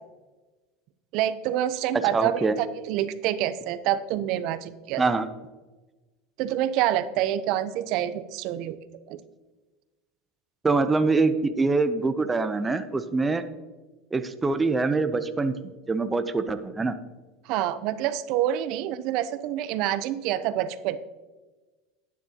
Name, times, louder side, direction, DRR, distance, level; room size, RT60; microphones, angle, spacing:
voice 1, 1.1-5.0 6.4-8.8 9.1-9.2 17.5-21.0, right 12 dB, 55° right, 14 dB, 0.6 m, -27 dB
voice 2, 2.1-2.6 5.0-5.3 10.6-13.4 14.1-15.5 15.9-17.0, right 3 dB, 15° right, 10 dB, 0.6 m, -24 dB
11.5 x 9.6 x 2.9 m, 1.2 s
supercardioid pair, 135°, 0 cm